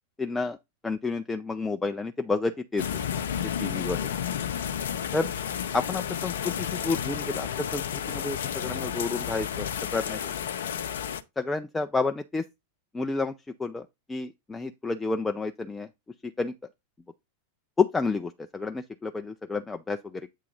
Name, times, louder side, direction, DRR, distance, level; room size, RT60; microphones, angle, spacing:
voice 1, 0.2-0.6 0.8-2.8 3.6-4.1 5.1-5.3 5.7-7.8 8.1-10.2 11.4-12.4 12.9-13.3 13.6-13.8 14.1-15.9 16.4-16.5 17.8-20.3, left 3 dB, 10° left, 0.4 m, -30 dB
sound 1, 2.8-11.2, left 8 dB, 60° left, 0.5 m, -31 dB
8.1 x 2.8 x 5.1 m
figure-of-eight pair, 90°, 0 cm